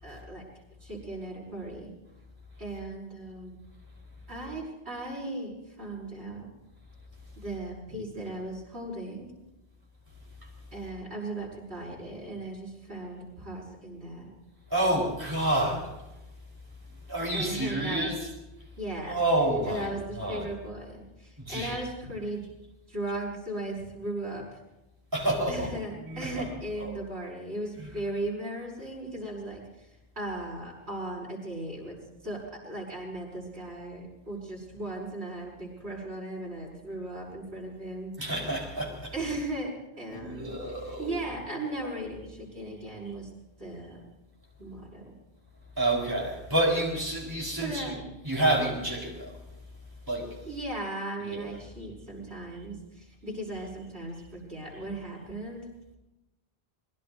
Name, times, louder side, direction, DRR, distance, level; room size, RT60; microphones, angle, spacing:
voice 1, 0.0-0.4 0.8-1.9 2.6-3.6 4.3-6.5 7.4-9.3 10.7-14.3 17.3-18.1 18.8-19.2 19.6-22.5 22.9-24.6 25.5-29.6 30.2-32.0 32.2-38.1 39.1-40.5 41.0-43.3 43.6-44.0 44.6-45.1 47.6-48.0 50.5-55.6, right 1 dB, 85° right, 6.5 m, -37 dB
voice 2, 14.7-15.9 17.1-18.3 19.1-20.5 21.4-21.8 25.1-25.7 26.0-26.5 26.8-27.0 27.8-27.9 38.2-39.1 40.1-41.1 45.8-49.4 50.1-50.4 51.2-51.5, right 1 dB, 20° right, 4.3 m, -29 dB
25.5 x 21.0 x 2.7 m
omnidirectional pair, 1.1 m